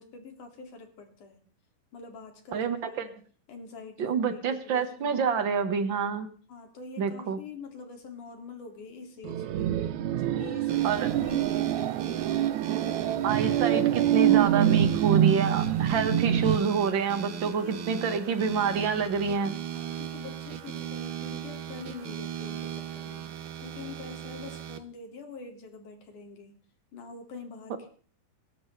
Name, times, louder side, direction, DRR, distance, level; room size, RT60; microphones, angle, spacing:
voice 1, 0.0-1.4 1.9-3.2 3.5-5.6 6.5-9.7 10.1-12.2 15.8-16.3 17.4-17.9 19.6-23.3 23.6-26.6 26.9-27.9, left 4 dB, 65° left, 4 dB, 3.9 m, -45 dB
voice 2, 2.5-3.0 4.0-6.3 7.0-7.4 10.8-11.1 13.2-19.6, right 6 dB, 45° right, 8 dB, 1.6 m, -27 dB
sound 1, 9.2-16.6, right 11 dB, 70° right, 2.0 m, -25 dB
sound 2, 10.7-24.8, right 9 dB, 90° right, 1.1 m, -38 dB
26.0 x 13.0 x 3.3 m, 0.42 s
omnidirectional pair, 3.9 m